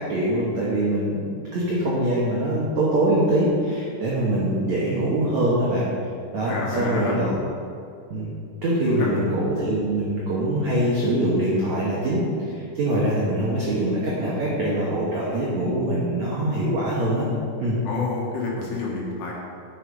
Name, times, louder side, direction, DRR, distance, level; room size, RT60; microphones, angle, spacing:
voice 1, 0.0-5.9 6.3-7.3 8.1-8.3 8.6-17.2 17.6-17.8, right 1 dB, 90° right, -6 dB, 1.5 m, -23 dB
voice 2, 6.4-7.4 8.8-9.2 17.9-19.3, left 3 dB, 70° left, -3 dB, 3.3 m, -28 dB
8.4 x 7.7 x 5.2 m, 2.4 s
omnidirectional pair, 5.5 m